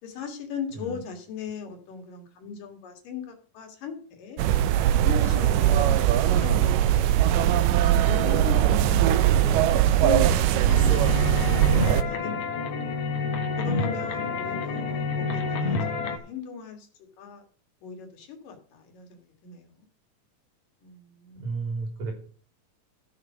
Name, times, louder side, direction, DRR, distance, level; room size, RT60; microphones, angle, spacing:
voice 1, 0.0-4.4 5.0-5.9 6.2-7.4 8.0-12.8 13.6-15.8 16.0-16.9 17.2-17.4 17.8-19.9 20.8-21.5, left 6 dB, 80° left, 4 dB, 3.6 m, -38 dB
sound 1, 4.4-12.0, right 11 dB, 85° right, 2.4 m, -21 dB
sound 2, 10.7-16.2, left 4 dB, 55° left, 2.1 m, -28 dB
voice 2, 21.4-22.1, right 3 dB, 60° right, 3 dB, 4.4 m, -32 dB
13.5 x 6.3 x 6.0 m, 0.43 s
omnidirectional pair, 3.8 m